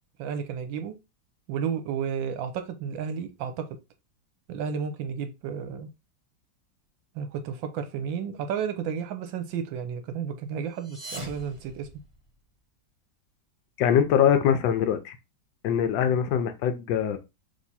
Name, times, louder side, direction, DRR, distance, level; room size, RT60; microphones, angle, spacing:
voice 1, 0.2-0.9 1.5-3.7 4.5-5.9 7.1-11.9, right 7 dB, 80° right, 1.5 m, -32 dB
sound 1, 10.7-12.6, right 1 dB, 20° right, 1.0 m, -42 dB
voice 2, 13.8-15.2 15.6-17.2, left 8 dB, 75° left, 1.3 m, -23 dB
3.5 x 3.3 x 4.1 m
omnidirectional pair, 2.1 m